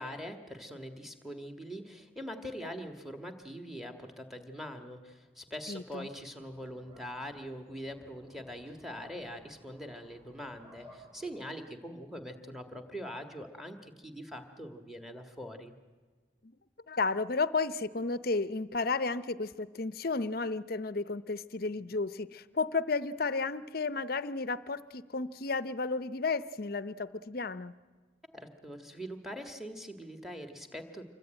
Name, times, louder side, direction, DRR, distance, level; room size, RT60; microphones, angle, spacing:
voice 1, 0.0-15.7 28.3-31.0, equal, ahead, 5 dB, 1.7 m, -43 dB
voice 2, 5.7-6.1 16.4-16.5 16.9-27.7, left 3 dB, 50° left, 14 dB, 0.7 m, -33 dB
sound 1, 6.4-11.4, equal, 20° right, 5.9 m, -59 dB
26.5 x 23.5 x 9.1 m, 1.4 s
head